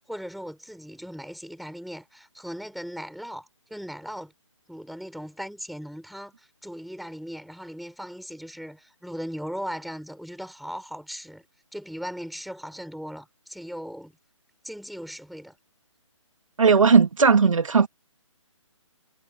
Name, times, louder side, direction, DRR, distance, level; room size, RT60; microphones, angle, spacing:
voice 1, 0.0-4.3 4.7-11.4 11.7-14.1 14.6-15.6, equal, ahead, 3.5 m, -38 dB
voice 2, 16.6-17.9, right 5 dB, 80° right, 2.5 m, -17 dB
hypercardioid pair, 175°, 17 cm